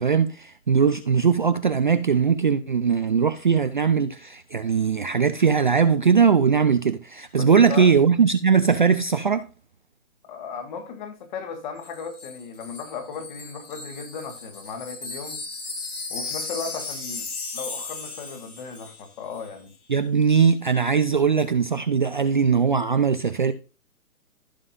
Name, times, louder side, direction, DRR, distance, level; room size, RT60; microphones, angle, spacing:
voice 1, 0.0-9.5 19.9-23.5, right 6 dB, 35° right, 0.4 m, -20 dB
voice 2, 7.4-7.9 10.3-15.4 16.1-17.3 17.5-19.8, left 5 dB, 30° left, 1.6 m, -36 dB
Wind chime, 11.8-19.1 19.3-19.5, left 3 dB, 90° left, 3.7 m, -36 dB
15.0 x 5.4 x 2.5 m
hypercardioid pair, 160°, 43 cm